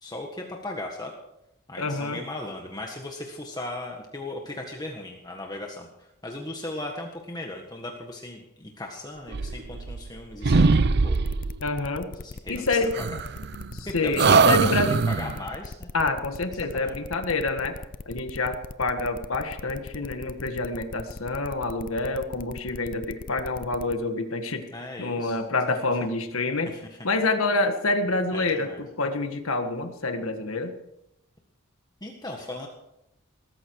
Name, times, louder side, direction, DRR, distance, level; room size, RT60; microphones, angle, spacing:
voice 1, 0.0-1.1 1.7-11.2 12.1-13.2 13.8-15.9 16.7-16.9 24.7-25.4 26.6-27.0 28.3-28.8 32.0-32.7, left 2 dB, 20° left, 1 dB, 1.6 m, -37 dB
voice 2, 1.8-2.2 11.6-12.1 12.5-12.9 13.7-14.9 15.9-17.8 18.0-24.7 25.0-26.7 27.0-30.7, left 3 dB, 75° left, 6 dB, 1.7 m, -27 dB
sound 1, 9.3-10.2 10.4-11.6 12.9-13.8 14.2-15.4, right 4 dB, 50° right, 0.6 m, -22 dB
sound 2, 11.1-24.0, left 3 dB, 40° left, 0.6 m, -40 dB
20.5 x 14.0 x 4.8 m, 0.84 s
head